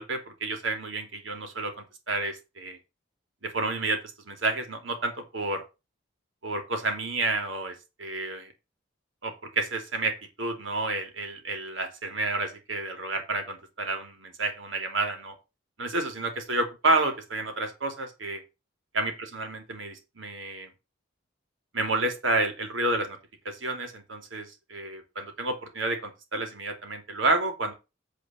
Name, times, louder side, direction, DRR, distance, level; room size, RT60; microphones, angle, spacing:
voice 1, 0.0-2.8 3.4-4.0 4.2-5.6 6.4-8.5 9.2-15.3 15.8-18.4 18.9-20.7 21.7-23.2 23.4-27.7, right 2 dB, 80° right, 5 dB, 2.8 m, -30 dB
9.0 x 4.3 x 7.4 m, 0.27 s
head